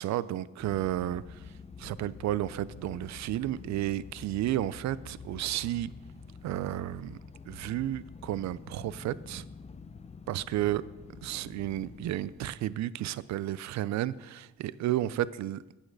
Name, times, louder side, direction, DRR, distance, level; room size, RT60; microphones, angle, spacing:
voice 1, 0.0-1.4 1.8-5.9 6.4-7.2 7.5-9.4 10.3-10.8 11.2-15.6, right 13 dB, 65° right, 0.5 m, -32 dB
sound 1, 0.6-12.5, left 5 dB, 20° left, 0.6 m, -48 dB
8.9 x 8.5 x 4.7 m
cardioid pair, 90°, 30 cm